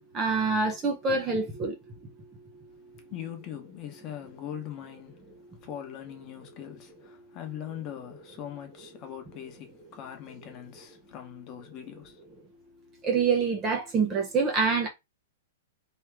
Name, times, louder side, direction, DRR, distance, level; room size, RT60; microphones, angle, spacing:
voice 1, 0.1-1.8 13.0-14.9, right 4 dB, 15° right, 0.7 m, -26 dB
voice 2, 3.1-12.2, left 10 dB, 20° left, 1.0 m, -41 dB
3.5 x 3.0 x 4.6 m
hypercardioid pair, 175°, 0 cm